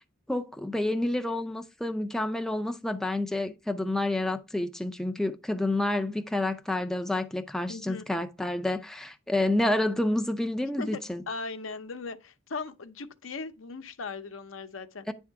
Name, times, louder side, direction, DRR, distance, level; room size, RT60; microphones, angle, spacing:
voice 1, 0.3-11.2 15.1-15.2, left 1 dB, ahead, 0.4 m, -29 dB
voice 2, 7.7-8.1 10.8-11.0 11.3-15.1, left 4 dB, 70° left, 0.7 m, -38 dB
9.6 x 3.6 x 4.6 m
head